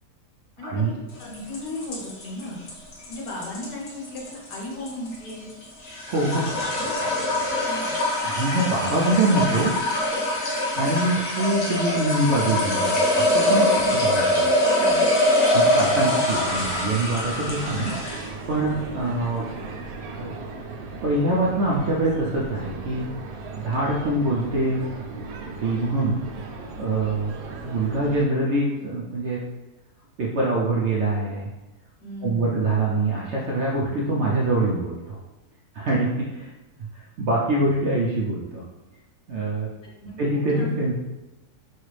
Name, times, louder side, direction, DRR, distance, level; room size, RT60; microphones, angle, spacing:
voice 1, 0.6-1.0 6.1-6.4 8.2-9.7 10.7-13.7 13.9-14.6 15.5-17.9 18.5-19.5 20.2-20.3 21.0-23.0 23.5-25.1 25.5-26.2 26.8-27.3 27.6-29.4 30.2-31.5 32.2-35.2 35.7-36.5 36.9-38.6 39.3-39.7 40.2-41.0, right 2 dB, 70° right, -4 dB, 0.6 m, -24 dB
voice 2, 1.2-2.6 3.1-5.5 6.1-6.4 6.7-7.1 7.7-8.0 13.6-14.0 14.7-15.1 32.0-32.6 39.8-40.2 40.5-40.7, left 2 dB, 90° left, -1 dB, 1.5 m, -36 dB
sound 1, 1.2-18.4, left 1 dB, 65° left, 1.4 m, -23 dB
sound 2, 16.3-28.3, right 3 dB, 90° right, 1.2 m, -37 dB
4.3 x 2.4 x 3.1 m, 1.1 s
omnidirectional pair, 1.7 m